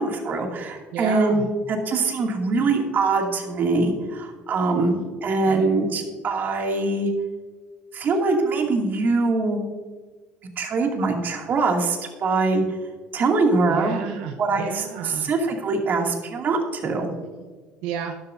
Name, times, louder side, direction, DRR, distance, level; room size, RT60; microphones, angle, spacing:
voice 1, 0.0-7.1 7.9-9.6 10.6-12.6 13.1-14.0 14.4-17.1, right 3 dB, 45° right, 2 dB, 2.5 m, -23 dB
voice 2, 0.9-1.5 2.6-2.7 4.6-5.1 5.4-5.7 13.6-15.3 17.0-17.5 17.8-18.2, right 8 dB, 85° right, 4 dB, 0.9 m, -33 dB
12.5 x 11.5 x 2.7 m, 1.4 s
cardioid pair, 110°, 5 cm